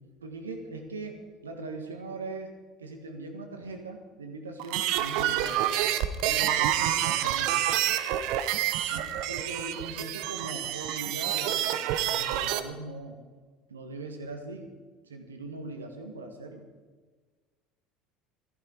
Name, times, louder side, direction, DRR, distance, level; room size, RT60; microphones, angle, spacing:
voice 1, 0.2-2.5 2.8-5.9 6.3-7.6 8.9-11.8 12.1-13.2 13.7-14.7 15.0-16.6, right 3 dB, 80° right, 5 dB, 1.6 m, -40 dB
sound 1, 4.6-12.6, right 12 dB, 60° right, 0.7 m, -28 dB
14.0 x 11.5 x 4.9 m, 1.4 s
figure-of-eight pair, 65°, 0 cm